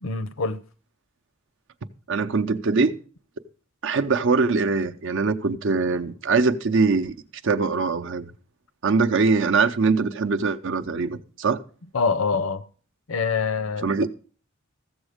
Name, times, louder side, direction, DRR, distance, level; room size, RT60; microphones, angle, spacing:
voice 1, 0.0-0.6 11.9-12.6 13.1-13.9, left 5 dB, 75° left, 0.7 m, -25 dB
voice 2, 2.1-3.0 3.8-7.1 7.4-8.3 8.8-11.6 13.8-14.1, right 4 dB, 65° right, 0.7 m, -22 dB
14.5 x 7.1 x 5.0 m
head